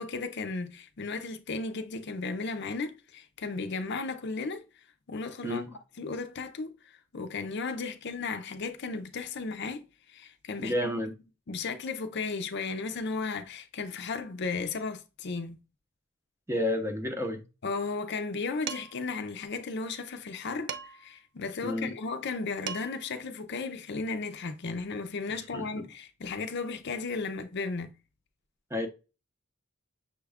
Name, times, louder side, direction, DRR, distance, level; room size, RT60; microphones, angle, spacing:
voice 1, 0.0-4.6 5.1-5.6 6.0-10.9 11.5-15.6 17.6-27.9, left 4 dB, 55° left, 0.5 m, -35 dB
voice 2, 5.4-5.8 10.6-11.1 16.5-17.4 21.6-21.9 25.5-25.9 28.7-28.9, left 1 dB, 15° right, 0.7 m, -31 dB
Dishes pots and pans, 18.7-19.1 20.7-21.2 22.3-22.4 22.7-23.1, right 8 dB, 60° right, 0.4 m, -38 dB
6.2 x 2.3 x 3.5 m
head